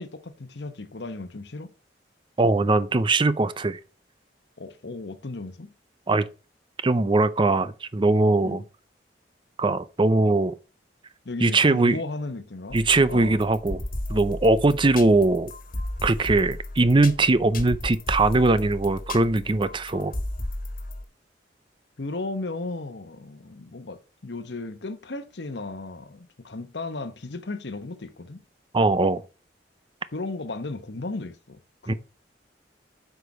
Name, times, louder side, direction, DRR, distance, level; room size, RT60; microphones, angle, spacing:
voice 1, 0.0-1.7 4.6-5.7 8.4-8.6 11.2-12.8 13.1-13.4 22.0-28.4 30.1-31.9, left 2 dB, 70° left, 1.0 m, -35 dB
voice 2, 2.4-3.8 6.1-6.3 6.8-8.6 9.6-10.5 11.4-12.0 12.7-13.8 14.1-15.5 16.0-20.1 28.7-29.2 31.9-32.0, right 2 dB, 30° right, 0.5 m, -21 dB
sound 1, 12.7-21.0, left 1 dB, 55° left, 1.6 m, -34 dB
8.0 x 5.1 x 6.1 m
head